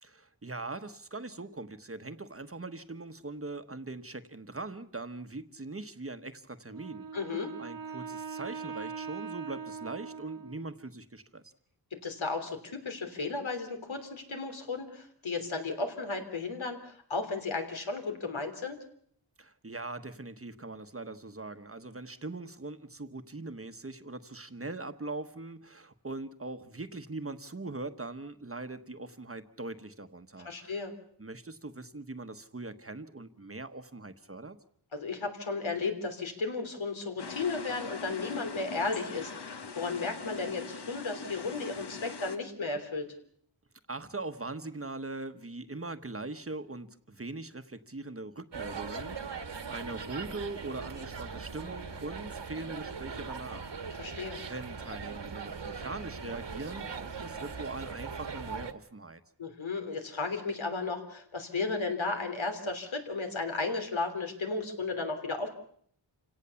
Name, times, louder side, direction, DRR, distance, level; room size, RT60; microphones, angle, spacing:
voice 1, 0.0-7.1 7.6-11.5 19.4-30.8 31.2-34.6 43.9-53.8 54.4-59.2, right 2 dB, 30° right, 10 dB, 1.2 m, -41 dB
Wind instrument woodwind instrument, 6.7-10.9, right 6 dB, 50° right, 1.4 m, -41 dB
voice 2, 7.1-7.5 11.9-12.6 12.8-18.8 30.4-30.9 34.9-43.1 54.0-54.4 59.4-65.5, left 3 dB, 85° left, 5 dB, 3.3 m, -34 dB
sound 1, 37.2-42.4, left 4 dB, 60° left, 1.5 m, -42 dB
sound 2, 48.5-58.7, right 5 dB, 65° right, 1.7 m, -40 dB
28.0 x 17.5 x 7.0 m, 0.65 s
wide cardioid pair, 100°, 46 cm